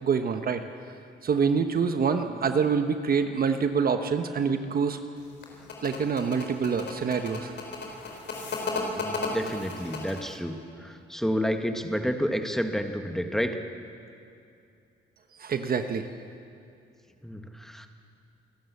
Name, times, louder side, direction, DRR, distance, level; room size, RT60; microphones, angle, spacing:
voice 1, 0.0-0.6 1.2-5.0 5.8-7.5 15.4-16.1, right 6 dB, 50° right, 7 dB, 1.1 m, -26 dB
sound 1, 5.2-10.4, left 3 dB, 65° left, 4.5 m, -34 dB
voice 2, 8.9-13.6 17.2-17.9, equal, ahead, 5 dB, 1.6 m, -30 dB
26.0 x 12.5 x 8.4 m, 2.5 s
cardioid pair, 90°, 20 cm